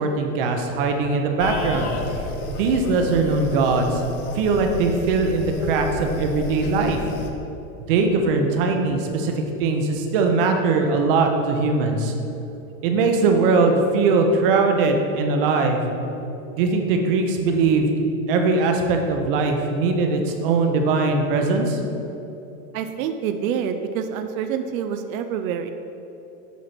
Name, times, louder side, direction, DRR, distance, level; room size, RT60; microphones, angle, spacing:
voice 1, 0.0-1.9 2.5-4.0 4.3-7.0 7.9-9.3 9.6-12.1 12.8-15.8 16.5-17.9 18.3-21.8, right 4 dB, 40° right, 4 dB, 0.8 m, -20 dB
sound 1, 1.4-7.3, left 2 dB, 85° left, 1.1 m, -31 dB
voice 2, 22.7-25.7, right 8 dB, 70° right, 8 dB, 0.6 m, -27 dB
8.3 x 4.2 x 5.9 m, 3.0 s
supercardioid pair, 175°, 43 cm